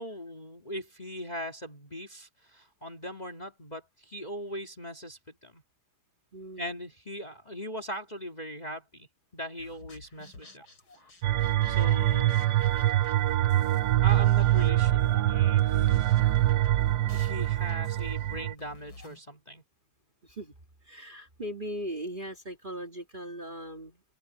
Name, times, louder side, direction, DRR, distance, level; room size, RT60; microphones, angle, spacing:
voice 1, 0.0-5.6 6.6-9.1 9.3-10.6 11.7-12.5 14.0-16.2 17.1-19.6, equal, 20° left, 1.9 m, -40 dB
voice 2, 6.3-6.8 20.2-20.5 20.8-24.0, equal, 25° right, 2.0 m, -39 dB
sound 1, 9.6-19.2, left 2 dB, 70° left, 5.6 m, -52 dB
sound 2, 11.2-18.5, right 13 dB, 70° right, 1.0 m, -24 dB
omnidirectional pair, 2.3 m